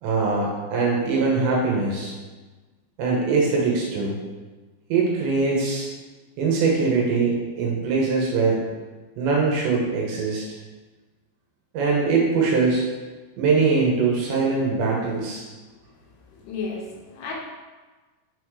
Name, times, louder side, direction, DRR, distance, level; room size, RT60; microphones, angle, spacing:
voice 1, 0.0-2.1 3.0-4.2 4.9-5.9 6.4-8.6 9.2-10.5 11.7-12.8 13.4-15.5, right 4 dB, 75° right, -2 dB, 3.0 m, -22 dB
voice 2, 16.3-17.3, left 4 dB, 75° left, -2 dB, 3.2 m, -33 dB
7.2 x 4.2 x 4.7 m, 1.3 s
omnidirectional pair, 5.7 m